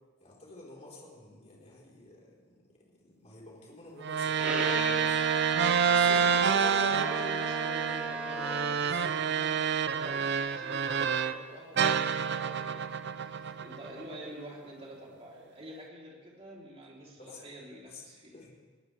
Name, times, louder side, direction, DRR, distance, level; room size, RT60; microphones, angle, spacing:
voice 1, 0.2-2.6 2.9-5.2 5.8-6.3 8.9-9.2 13.4-13.5 17.2-17.4 17.8-18.0 18.3-18.5, left 2 dB, 35° left, -4 dB, 4.3 m, -50 dB
sound 1, 4.0-11.4 11.8-14.1, right 7 dB, 60° right, 0.6 m, -28 dB
Bowed string instrument, 4.4-8.9, right 1 dB, 5° right, 1.9 m, -37 dB
voice 2, 6.1-18.4, right 1 dB, 30° right, -4 dB, 3.6 m, -46 dB
21.0 x 18.5 x 3.5 m, 1.4 s
head